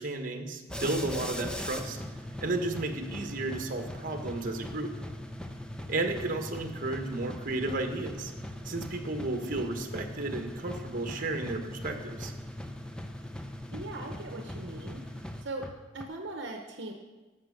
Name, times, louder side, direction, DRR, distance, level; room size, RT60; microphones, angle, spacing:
voice 1, 0.0-2.0 2.4-4.9 5.9-8.3 8.6-12.3, right 2 dB, 45° right, 5 dB, 1.2 m, -33 dB
sound 1, 0.7-16.1, left 1 dB, 5° left, 0.6 m, -40 dB
voice 2, 13.7-15.7 15.9-16.9, right 2 dB, 60° right, 3 dB, 0.9 m, -40 dB
13.5 x 5.7 x 6.5 m, 1.2 s
head